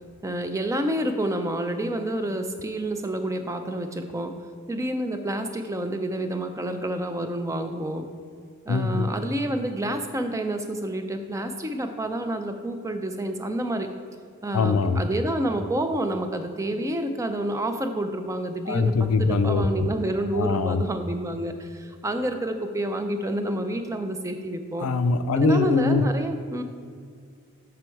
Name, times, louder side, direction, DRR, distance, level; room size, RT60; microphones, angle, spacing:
voice 1, 0.2-4.3 4.7-8.1 8.7-13.9 14.4-24.9 25.3-26.6, right 1 dB, 15° right, 7 dB, 0.4 m, -28 dB
voice 2, 8.7-9.1 14.5-15.0 18.7-19.9 20.3-20.8 24.8-26.0, left 4 dB, 75° left, 8 dB, 0.4 m, -23 dB
6.1 x 5.9 x 4.5 m, 2.2 s
head